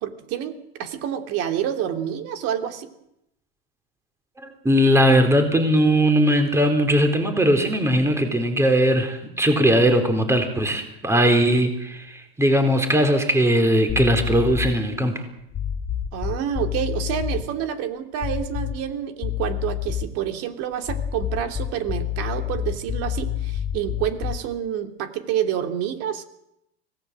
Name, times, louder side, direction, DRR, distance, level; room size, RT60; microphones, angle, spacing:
voice 1, 0.0-2.9 16.1-26.2, right 10 dB, 50° right, 7 dB, 3.1 m, -28 dB
voice 2, 4.4-15.2, equal, 10° right, 6 dB, 4.1 m, -19 dB
sound 1, 13.9-14.8 15.5-17.4 18.2-18.9 19.2-20.2 20.8-24.5, left 10 dB, 30° left, 3.0 m, -28 dB
25.0 x 18.0 x 7.8 m, 0.80 s
supercardioid pair, 125°, 32 cm